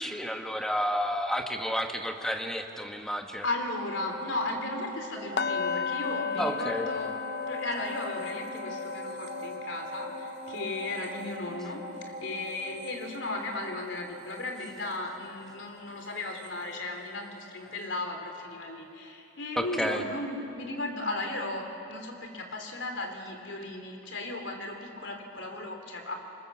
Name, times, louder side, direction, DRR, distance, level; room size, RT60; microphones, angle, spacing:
voice 1, 0.0-3.5 6.4-6.9 19.6-20.0, equal, 5° left, 4 dB, 1.2 m, -31 dB
voice 2, 3.4-7.1 7.5-11.8 12.2-26.2, left 2 dB, 85° left, 3 dB, 3.4 m, -36 dB
sound 1, 3.7-17.4 17.8-17.9, right 1 dB, 40° right, 2.9 m, -43 dB
sound 2, 5.4-15.3 15.6-15.9 16.3-16.5, left 6 dB, 55° left, 0.6 m, -37 dB
25.0 x 20.5 x 7.4 m, 2.7 s
head